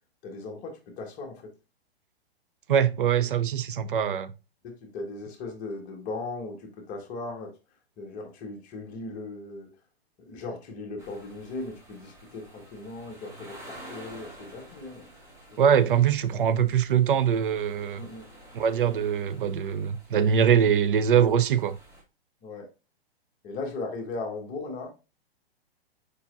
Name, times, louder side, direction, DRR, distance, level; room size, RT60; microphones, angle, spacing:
voice 1, 0.2-1.5 4.6-7.5 8.0-9.7 10.2-15.1 15.5-15.6 18.0-18.3 22.4-22.7 23.4-24.9, left 3 dB, 25° left, 1.2 m, -38 dB
voice 2, 2.7-4.3 15.6-18.0 18.5-21.8, right 8 dB, 55° right, 0.5 m, -23 dB
sound 1, 11.0-22.0, right 1 dB, 10° right, 1.1 m, -50 dB
4.9 x 4.5 x 2.4 m
figure-of-eight pair, 115°, 31 cm